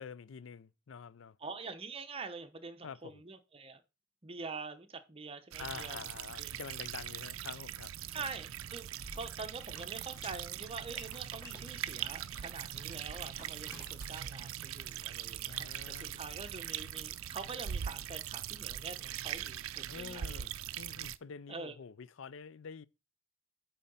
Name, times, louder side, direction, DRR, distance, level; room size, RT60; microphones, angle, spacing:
voice 1, 0.0-1.4 2.8-3.2 5.6-8.3 15.4-16.2 19.9-22.8, left 6 dB, 65° left, 0.4 m, -47 dB
voice 2, 1.4-3.8 4.2-6.0 6.4-6.5 8.1-8.9 9.1-20.5 21.5-21.7, right 4 dB, 30° right, 0.8 m, -45 dB
sound 1, 5.5-21.2, right 10 dB, 85° right, 0.4 m, -41 dB
sound 2, 9.0-14.0, left 1 dB, 15° left, 3.1 m, -54 dB
8.4 x 3.8 x 5.4 m
head